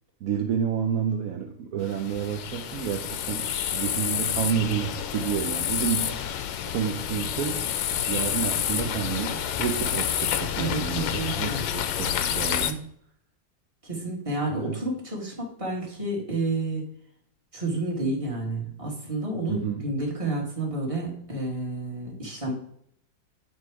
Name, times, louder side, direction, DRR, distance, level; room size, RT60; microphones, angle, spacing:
voice 1, 0.2-3.5 3.7-6.2 6.7-7.7 8.1-12.9 14.5-14.8 19.5-19.8, right 8 dB, 70° right, 3 dB, 0.8 m, -30 dB
sound 1, 1.8-12.7, left 9 dB, 85° left, 1.3 m, -29 dB
voice 2, 10.5-11.6 13.8-16.8 17.5-22.5, right 2 dB, 20° right, -2 dB, 1.6 m, -30 dB
9.0 x 3.2 x 4.6 m, 0.66 s
omnidirectional pair, 2.0 m